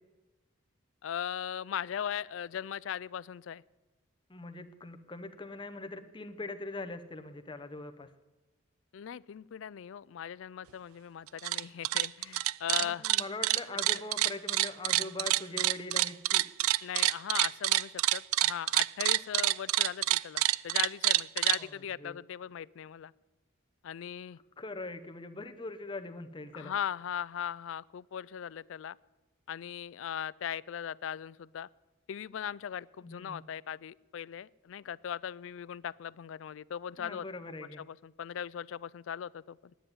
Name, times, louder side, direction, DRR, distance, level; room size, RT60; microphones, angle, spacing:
voice 1, 1.0-3.6 8.9-13.0 16.8-23.1 23.8-24.4 26.5-29.0 29.5-31.7 32.1-37.3 37.9-39.7, left 9 dB, 65° left, 21 dB, 0.3 m, -39 dB
voice 2, 4.3-8.1 12.8-16.5 21.5-22.2 24.6-26.7 33.0-33.4 37.0-37.8, left 2 dB, 20° left, 8 dB, 0.8 m, -42 dB
sound 1, 11.3-11.6 11.8-21.6, right 17 dB, 85° right, 0.3 m, -27 dB
10.0 x 9.5 x 8.9 m, 1.2 s
head